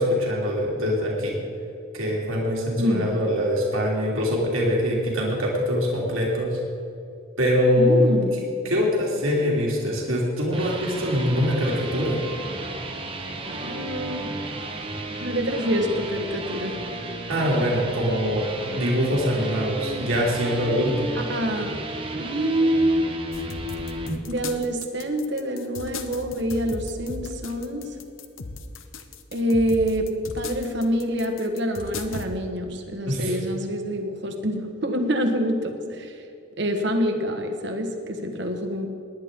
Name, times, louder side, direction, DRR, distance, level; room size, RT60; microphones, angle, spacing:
voice 1, 0.0-1.4 1.9-6.6 7.4-8.1 8.6-12.2 17.3-18.5 18.7-21.1 33.1-33.4, equal, 85° right, -3 dB, 2.6 m, -23 dB
voice 2, 2.8-3.1 7.8-8.4 13.5-14.3 15.2-16.8 21.3-21.8 22.2-23.1 24.3-27.9 29.3-36.2 36.6-38.9, equal, 55° right, 4 dB, 1.4 m, -26 dB
sound 1, 10.3-24.2, right 2 dB, 25° right, 1.2 m, -33 dB
sound 2, 23.3-32.3, left 3 dB, 75° left, 0.9 m, -37 dB
19.5 x 10.5 x 3.7 m, 2.7 s
head